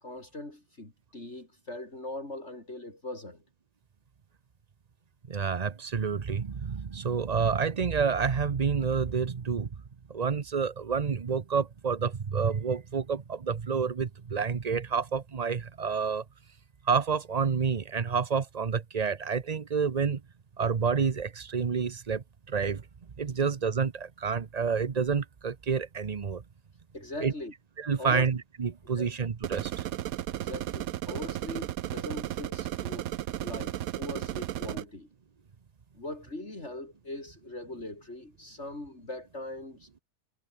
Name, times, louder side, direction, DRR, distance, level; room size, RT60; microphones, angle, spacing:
voice 1, 0.0-3.4 26.9-27.5 28.0-28.3 29.0-29.1 30.3-33.1 33.4-35.1 36.0-39.9, left 2 dB, 50° left, 5.4 m, -40 dB
voice 2, 5.3-9.7 10.1-16.2 16.8-20.2 20.6-22.8 23.2-26.4 27.2-27.3 27.8-29.8, right 6 dB, 35° right, 0.8 m, -29 dB
sound 1, 29.4-34.8, right 12 dB, 85° right, 1.2 m, -34 dB
omnidirectional pair, 1.5 m